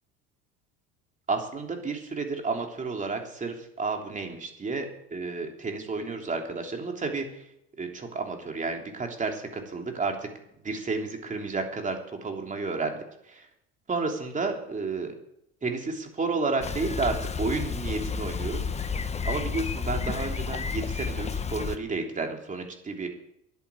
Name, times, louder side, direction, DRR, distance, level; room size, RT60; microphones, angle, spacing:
voice 1, 1.3-7.4 7.8-10.3 10.6-13.5 13.9-15.1 15.6-23.1, right 3 dB, 25° right, 3 dB, 3.2 m, -31 dB
Bicycle, 16.6-21.8, left 5 dB, 20° left, 1.0 m, -31 dB
10.5 x 9.1 x 9.0 m, 0.76 s
supercardioid pair, 95°, 29 cm